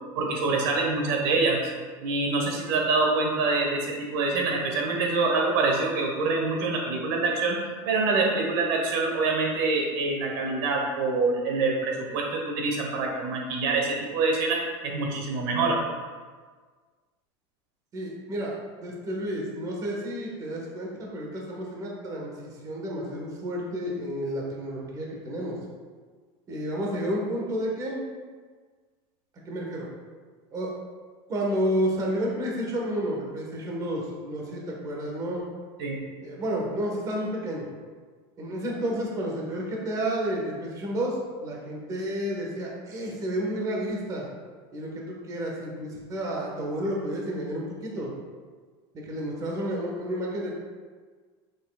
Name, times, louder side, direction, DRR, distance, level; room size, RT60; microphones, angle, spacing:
voice 1, 0.1-1.6 2.0-7.6 7.8-15.8 35.8-36.0, right 3 dB, 65° right, 0 dB, 1.3 m, -25 dB
voice 2, 17.9-22.3 22.6-25.6 26.5-28.0 29.4-29.9 30.5-30.7 31.3-35.4 36.2-37.7 38.4-44.3 44.7-48.1 48.9-50.5, equal, 25° right, -2 dB, 1.4 m, -31 dB
8.2 x 6.5 x 2.4 m, 1.5 s
supercardioid pair, 155°, 13 cm